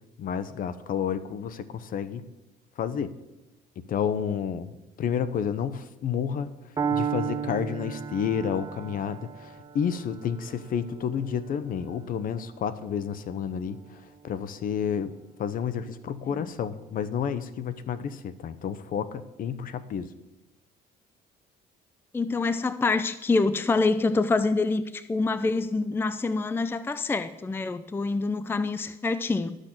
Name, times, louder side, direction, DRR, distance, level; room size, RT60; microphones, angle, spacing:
voice 1, 0.2-2.2 2.8-3.1 3.8-4.7 5.0-6.5 6.9-13.8 14.2-15.1 15.4-20.1, left 7 dB, 55° left, 14 dB, 0.9 m, -30 dB
Piano, 6.8-14.7, right 7 dB, 25° right, 0.9 m, -35 dB
voice 2, 22.1-29.6, left 3 dB, 15° left, 13 dB, 0.5 m, -26 dB
12.0 x 6.5 x 7.7 m, 1.0 s
cardioid pair, 110°, 17 cm